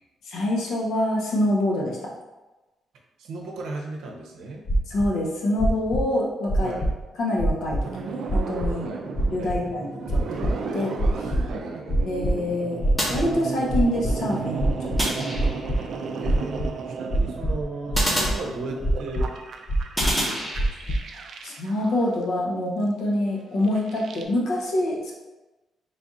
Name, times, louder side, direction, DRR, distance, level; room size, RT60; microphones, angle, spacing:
voice 1, 0.3-2.0 4.9-6.7 7.2-8.9 9.3-10.4 10.7-11.3 12.0-12.8 13.1-15.4 21.4-25.1, left 1 dB, 70° left, -3 dB, 0.9 m, -26 dB
voice 2, 3.2-4.6 6.6-6.9 8.8-9.0 9.4-9.6 11.4-11.8 16.2-19.3 20.0-20.8, right 2 dB, 80° right, 0 dB, 0.7 m, -35 dB
sound 1, 4.7-5.1 5.6-6.0 6.5-7.0 7.4-7.8 8.3-8.7 9.2-9.6 10.1-10.5 11.0-11.5 11.9-12.3 12.8-13.3 13.7-14.1 14.6-15.8 16.2-16.7 17.1-17.6 17.9-18.4 18.8-19.3 19.7-20.2 20.5-21.0, right 1 dB, 30° left, 0.5 m, -23 dB
sound 2, 7.8-22.1 23.6-24.2, right 4 dB, 55° right, 0.3 m, -34 dB
sound 3, 13.0-13.9 15.0-15.9 17.9-19.1 20.0-21.0, equal, 5° left, 0.8 m, -29 dB
3.3 x 2.4 x 4.0 m, 1.1 s
cardioid pair, 170°, 0 cm